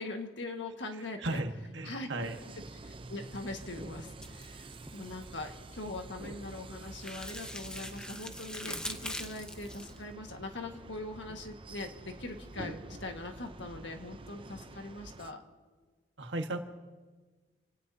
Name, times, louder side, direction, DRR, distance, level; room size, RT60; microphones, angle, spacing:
voice 1, 0.0-1.4 1.8-2.1 2.8-15.4, left 2 dB, 70° left, 4 dB, 1.7 m, -42 dB
voice 2, 1.0-2.4 16.2-16.6, right 2 dB, 75° right, 4 dB, 1.5 m, -35 dB
sound 1, 2.2-15.3, right 2 dB, 30° right, 0.6 m, -48 dB
sound 2, 4.2-5.3 6.8-10.0, left 1 dB, 5° left, 0.8 m, -42 dB
28.5 x 18.0 x 2.8 m, 1.3 s
head